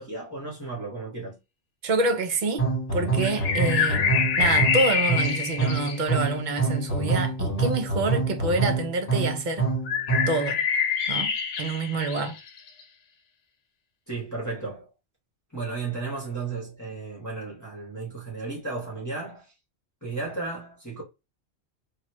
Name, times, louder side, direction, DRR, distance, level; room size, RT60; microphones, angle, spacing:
voice 1, 0.0-1.4 14.1-14.9 15.5-19.5 20.0-21.0, right 3 dB, 15° left, 1.1 m, -34 dB
voice 2, 1.8-4.1 4.4-9.7 10.3-10.6 11.1-12.4, right 2 dB, 55° right, 0.6 m, -27 dB
sound 1, 2.6-10.5, right 4 dB, 35° left, 1.2 m, -26 dB
sound 2, 3.2-6.4 9.9-12.8, left 6 dB, 85° left, 1.0 m, -26 dB
3.0 x 2.4 x 2.9 m
omnidirectional pair, 1.2 m